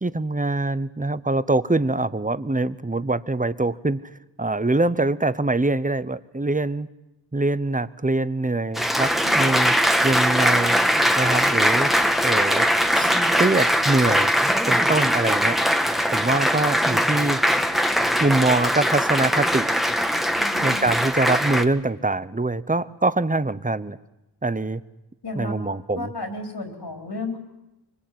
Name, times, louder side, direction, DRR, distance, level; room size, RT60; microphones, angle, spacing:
voice 1, 0.0-4.0 4.4-6.9 7.3-9.7 10.0-10.8 11.2-11.9 12.2-12.7 12.9-14.3 14.7-15.6 16.1-17.4 18.2-19.7 20.6-24.0 24.4-24.8 25.3-26.1, right 2 dB, 20° right, 16 dB, 0.9 m, -23 dB
Applause, 8.8-21.6, equal, ahead, 1.5 m, -21 dB
voice 2, 20.4-20.8 25.2-25.5 26.0-27.4, left 2 dB, 65° left, 4 dB, 4.4 m, -33 dB
24.5 x 22.5 x 9.4 m, 0.96 s
wide cardioid pair, 65°, 43 cm